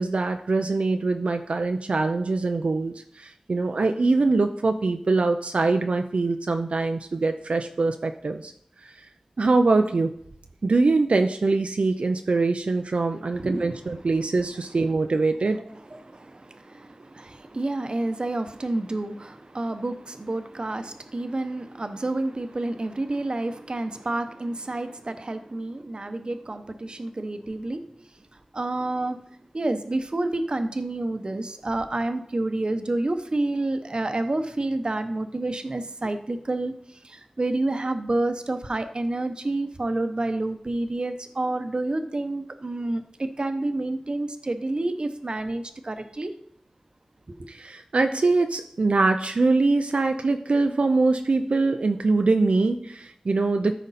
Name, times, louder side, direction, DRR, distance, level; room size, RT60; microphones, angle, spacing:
voice 1, 0.0-8.5 8.8-9.1 9.4-10.1 10.6-15.6 47.5-53.8, right 3 dB, 80° right, 5 dB, 0.5 m, -23 dB
voice 2, 13.4-13.7 15.9-27.8 28.5-29.2 29.5-46.3, right 2 dB, 50° right, 9 dB, 0.8 m, -29 dB
13.5 x 5.1 x 4.1 m, 0.68 s
wide cardioid pair, 70°, 2 cm